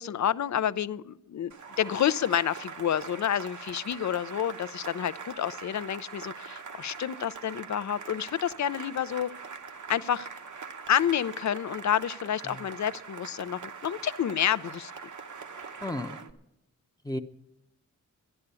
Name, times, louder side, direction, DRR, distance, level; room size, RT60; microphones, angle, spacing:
voice 1, 0.0-1.5 1.8-9.3 9.9-10.3 10.9-14.9, left 9 dB, 60° left, 17 dB, 0.5 m, -29 dB
Cheering / Applause, 1.5-16.3, right 5 dB, 70° right, 1.0 m, -43 dB
voice 2, 15.8-16.2 17.0-17.2, left 1 dB, 10° left, 3 dB, 0.7 m, -33 dB
13.0 x 10.5 x 6.8 m, 0.89 s
wide cardioid pair, 75°, 31 cm